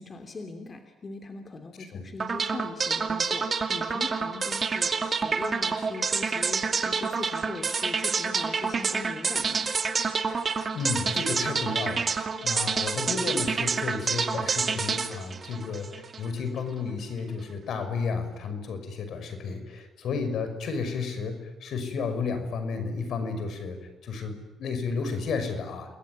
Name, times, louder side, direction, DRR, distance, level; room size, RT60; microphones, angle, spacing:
voice 1, 0.0-9.7, left 3 dB, 35° left, 5 dB, 2.8 m, -40 dB
sound 1, 2.2-16.3, right 5 dB, 40° right, 2.4 m, -28 dB
voice 2, 10.7-25.9, left 4 dB, 70° left, 9 dB, 5.8 m, -32 dB
29.0 x 21.0 x 9.5 m, 1.2 s
cardioid pair, 90°, 0 cm